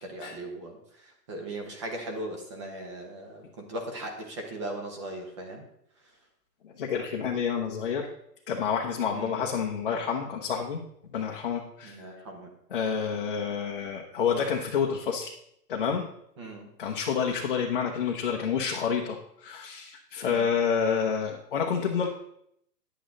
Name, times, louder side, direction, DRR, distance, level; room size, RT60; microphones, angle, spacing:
voice 1, 0.0-5.6 9.1-9.4 11.8-12.5 16.4-16.7 20.2-20.5, right 1 dB, 20° right, 3 dB, 0.9 m, -38 dB
voice 2, 6.6-8.1 8.5-10.8 11.1-12.0 12.7-15.3 15.7-16.1 16.8-22.1, left 6 dB, 35° left, -1 dB, 0.8 m, -29 dB
10.0 x 8.3 x 3.8 m, 0.72 s
hypercardioid pair, 165°, 50 cm